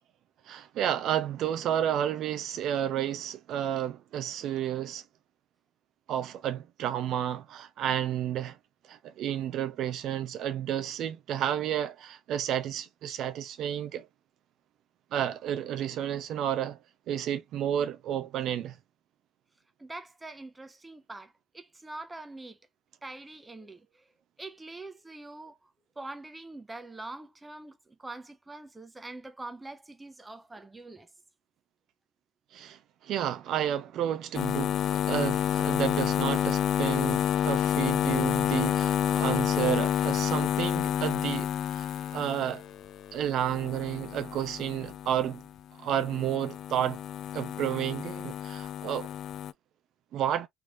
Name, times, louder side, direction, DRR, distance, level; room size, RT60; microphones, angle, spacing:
voice 1, 0.5-5.0 6.1-8.6 8.9-14.1 15.1-16.8 17.1-18.8 32.5-42.6 43.1-45.4 45.8-47.0 47.3-49.1 50.1-50.5, right 10 dB, 60° right, 0.5 m, -31 dB
voice 2, 19.8-22.6 23.0-24.1 24.4-25.7 26.0-31.1, right 2 dB, 10° right, 0.7 m, -44 dB
sound 1, 34.3-45.6 45.9-49.5, left 10 dB, 55° left, 0.3 m, -29 dB
3.3 x 3.2 x 2.4 m
cardioid pair, 150°, 0 cm